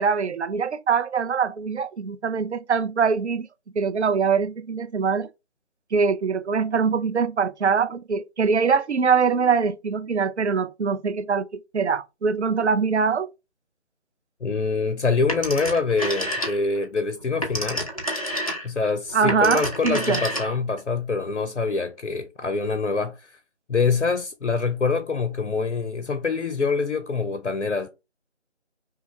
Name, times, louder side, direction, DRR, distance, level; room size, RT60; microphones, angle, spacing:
voice 1, 0.0-3.5 3.8-5.3 5.9-11.5 11.7-13.3 19.1-20.2, right 5 dB, 65° right, 0.5 m, -23 dB
voice 2, 14.4-17.9 18.6-23.4 23.7-27.9, left 4 dB, 80° left, 0.7 m, -25 dB
Telephone, 15.3-16.8 17.2-20.8, equal, 30° left, 0.7 m, -29 dB
5.7 x 2.1 x 2.9 m
figure-of-eight pair, 160°, 36 cm